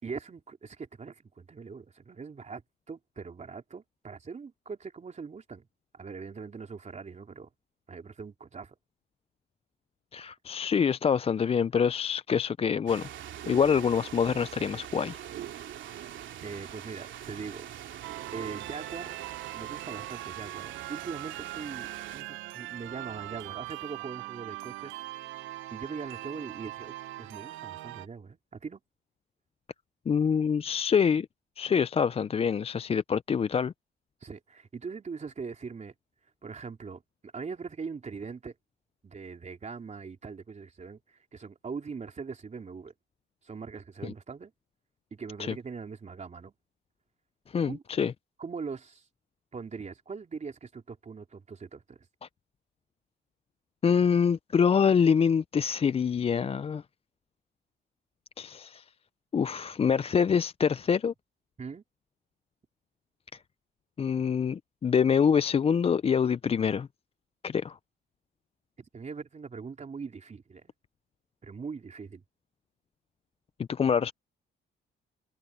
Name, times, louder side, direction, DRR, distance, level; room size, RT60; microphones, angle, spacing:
voice 1, 0.0-2.6 2.9-5.7 5.9-7.5 7.9-8.7 16.4-17.7 18.3-19.2 19.5-25.0 25.7-28.8 34.2-35.9 36.4-38.5 39.0-42.9 43.4-44.5 45.1-46.5 47.6-47.8 48.4-49.0 49.5-52.0 61.6-61.8 68.8-70.7 71.4-72.2, right 5 dB, 35° right, 3.4 m, -41 dB
voice 2, 10.1-13.1 13.5-15.2 30.1-31.3 31.6-33.7 44.0-44.1 45.4-45.5 47.5-48.1 52.2-52.3 53.8-56.8 58.4-58.8 59.3-61.1 64.0-66.9 67.4-67.8 73.7-74.1, left 7 dB, 30° left, 0.4 m, -25 dB
sound 1, 12.9-22.2, right 11 dB, 70° right, 2.8 m, -43 dB
sound 2, 18.0-28.1, right 17 dB, 90° right, 0.6 m, -41 dB
cardioid pair, 90°, 20 cm